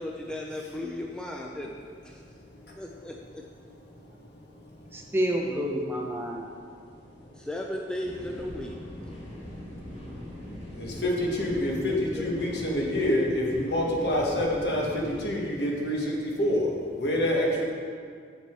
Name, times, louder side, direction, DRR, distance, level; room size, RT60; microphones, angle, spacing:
voice 1, 0.0-1.7 2.0-2.2 2.8-3.5 7.3-8.8 11.0-11.2 11.5-12.3 17.2-17.3, left 1 dB, 5° left, 0 dB, 0.4 m, -36 dB
voice 2, 4.9-6.5, equal, 15° right, 0 dB, 0.8 m, -28 dB
sound 1, 8.0-15.3, left 1 dB, 35° left, 1.5 m, -41 dB
voice 3, 10.7-17.6, left 1 dB, 70° left, -2 dB, 1.5 m, -27 dB
7.1 x 6.9 x 4.5 m, 2.1 s
head